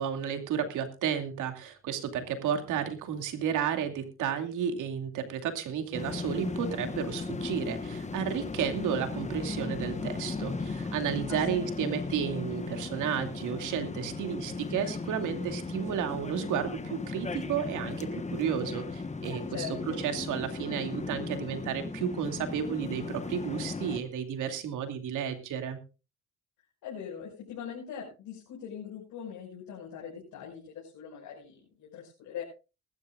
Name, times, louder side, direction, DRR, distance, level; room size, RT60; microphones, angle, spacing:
voice 1, 0.0-25.8, right 8 dB, 85° right, 6 dB, 2.6 m, -32 dB
sound 1, 5.9-24.0, left 3 dB, 25° left, 1.3 m, -36 dB
voice 2, 11.3-11.6 19.5-20.0 26.8-32.4, left 8 dB, 90° left, -3 dB, 5.8 m, -41 dB
21.5 x 12.0 x 2.5 m, 0.31 s
cardioid pair, 90°, 30 cm